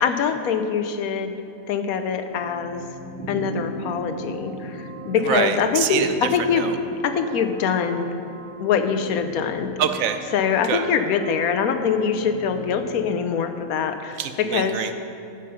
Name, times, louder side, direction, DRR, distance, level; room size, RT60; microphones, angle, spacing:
voice 1, 0.0-1.4 1.7-2.8 3.3-6.7 7.0-8.1 8.6-9.7 10.3-14.8, left 6 dB, 90° left, 8 dB, 1.2 m, -23 dB
sound 1, 2.3-13.6, right 2 dB, 5° left, 1.2 m, -42 dB
sound 2, 3.2-9.6, right 1 dB, 35° right, 1.0 m, -40 dB
voice 2, 5.2-6.2 6.5-6.8 9.8-10.2 10.6-10.9 14.2-14.9, right 8 dB, 75° right, 9 dB, 1.1 m, -25 dB
15.0 x 5.5 x 5.5 m, 2.7 s
omnidirectional pair, 1.5 m